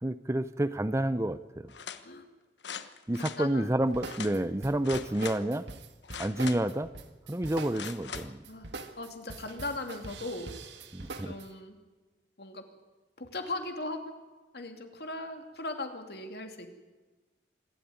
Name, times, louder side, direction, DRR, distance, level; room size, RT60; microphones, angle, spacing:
voice 1, 0.0-1.7 3.1-5.7 6.2-6.9 7.3-8.4 10.9-11.3, right 1 dB, 15° right, 13 dB, 0.6 m, -29 dB
sound 1, 1.7-2.0 2.6-3.4 4.1-4.3 4.8-5.4 6.0-6.8 7.7-8.3 8.8-8.9, left 7 dB, 85° left, 1.2 m, -41 dB
voice 2, 3.1-3.6 8.5-8.7 9.0-10.5 11.2-11.8 12.4-12.6 13.2-14.1 14.5-16.7, left 2 dB, 60° left, 5 dB, 2.7 m, -38 dB
sound 2, 3.9-11.5, right 3 dB, 85° right, 1.8 m, -43 dB
26.0 x 12.5 x 9.4 m, 1.2 s
head